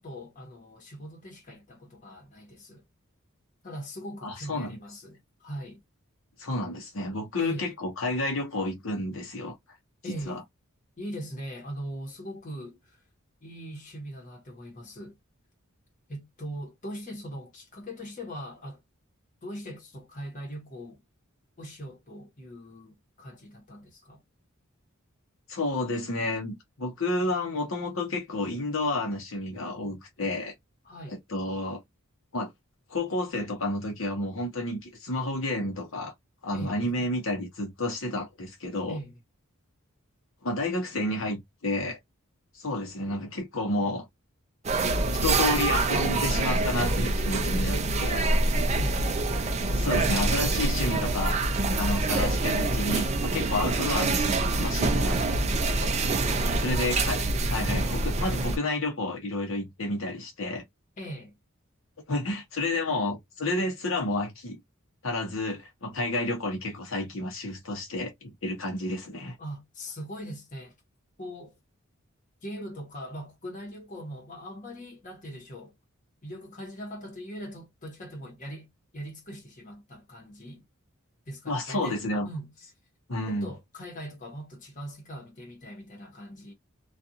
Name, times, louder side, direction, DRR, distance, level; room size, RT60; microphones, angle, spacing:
voice 1, 0.0-2.8 3.6-5.8 7.4-7.7 10.0-10.4 11.0-13.0 13.4-15.2 16.1-18.8 19.4-21.0 21.6-24.2 30.8-31.2 36.5-36.9 38.9-39.2 48.7-49.1 56.2-56.9 61.0-61.3 69.4-70.7 71.2-71.6 72.4-75.7 76.2-80.6 81.3-82.5 83.2-86.5, equal, 35° left, 1.1 m, -41 dB
voice 2, 4.2-4.8 6.4-9.6 10.3-10.4 25.5-30.5 31.1-31.8 32.3-32.5 32.9-36.1 36.4-39.0 40.4-42.0 42.5-44.0 45.1-48.3 49.7-51.4 51.8-55.3 55.8-55.9 56.6-60.6 62.1-64.6 65.0-69.3 81.5-82.3 83.1-83.5, left 2 dB, 70° left, 0.9 m, -30 dB
sound 1, 44.6-58.6, right 2 dB, 30° right, 0.5 m, -26 dB
2.5 x 2.4 x 2.7 m
head